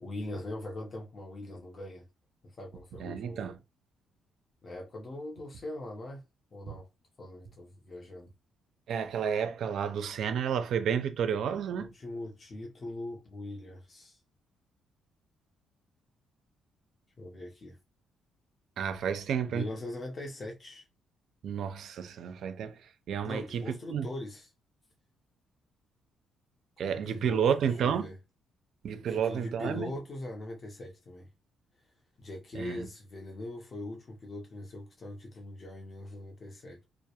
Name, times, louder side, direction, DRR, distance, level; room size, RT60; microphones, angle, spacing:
voice 1, 0.0-2.1 2.4-3.5 4.6-6.2 6.5-6.9 7.2-8.3 11.7-14.2 17.2-17.8 19.5-20.9 23.2-24.5 26.8-28.2 29.1-31.3 32.2-36.8, left 1 dB, 35° left, 0.7 m, -41 dB
voice 2, 3.0-3.5 6.7-6.8 8.9-11.9 18.8-19.6 21.4-22.8 23.1-24.1 26.8-28.1 28.8-29.9 32.5-32.9, right 7 dB, 70° right, 0.4 m, -31 dB
2.2 x 2.0 x 2.8 m
cardioid pair, 90°, 0 cm